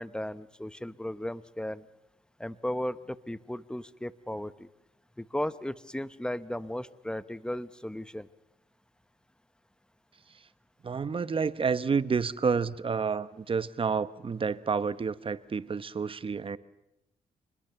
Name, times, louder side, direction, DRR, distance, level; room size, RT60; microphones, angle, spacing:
voice 1, 0.0-1.8 2.4-4.7 5.2-8.3, left 1 dB, 5° left, 15 dB, 0.9 m, -35 dB
voice 2, 10.8-16.6, right 5 dB, 35° right, 15 dB, 1.0 m, -29 dB
26.0 x 21.0 x 6.9 m, 0.88 s
cardioid pair, 80°, 15 cm